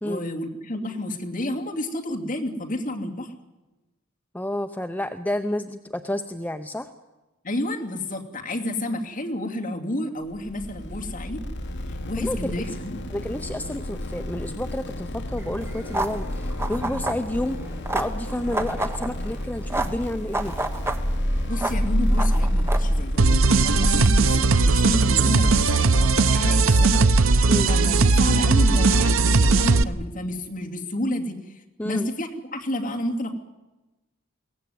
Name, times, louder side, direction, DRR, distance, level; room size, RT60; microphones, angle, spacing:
voice 1, 0.0-3.3 7.4-11.4 12.1-13.0 21.5-31.6 31.8-33.4, left 1 dB, 40° left, 1 dB, 2.7 m, -30 dB
voice 2, 4.3-6.9 12.2-12.8 13.1-17.6 17.9-20.6 27.5-27.7 31.8-32.1, left 1 dB, 10° left, 7 dB, 0.7 m, -30 dB
sound 1, 10.2-26.8, left 1 dB, 55° left, 1.3 m, -34 dB
sound 2, 15.4-24.1, equal, 10° right, 1.3 m, -26 dB
sound 3, 23.2-29.8, right 3 dB, 70° right, 0.8 m, -18 dB
22.5 x 17.0 x 9.5 m, 1.1 s
head